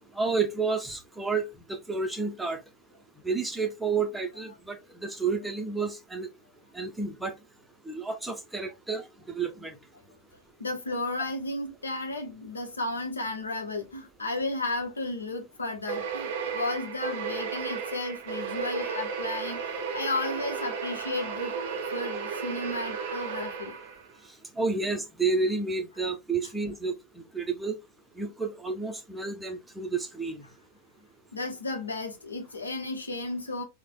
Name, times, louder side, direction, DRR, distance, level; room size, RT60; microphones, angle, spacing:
voice 1, 0.1-2.6 3.2-6.3 6.7-7.3 7.9-9.7 24.6-26.9 27.3-27.7 28.2-30.4, right 4 dB, 5° right, 0.6 m, -30 dB
voice 2, 10.6-21.5 21.9-23.8 31.3-33.6, left 2 dB, 75° left, 0.7 m, -33 dB
sound 1, 15.9-24.2, right 6 dB, 55° right, 0.5 m, -34 dB
3.2 x 2.0 x 2.4 m
figure-of-eight pair, 90°, 0 cm